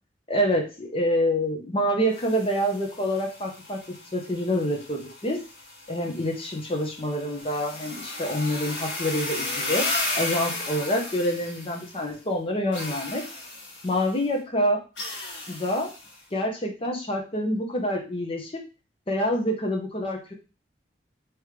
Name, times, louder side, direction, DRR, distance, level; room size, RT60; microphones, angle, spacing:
voice 1, 0.3-3.8 4.1-5.4 5.9-9.9 10.1-13.2 13.8-14.8 15.5-15.9 16.3-18.6 19.1-20.3, equal, 30° left, 2 dB, 0.9 m, -27 dB
sound 1, 2.1-12.1 12.7-14.1 15.0-16.2, left 2 dB, 85° left, 1.5 m, -35 dB
3.6 x 3.1 x 3.2 m, 0.31 s
head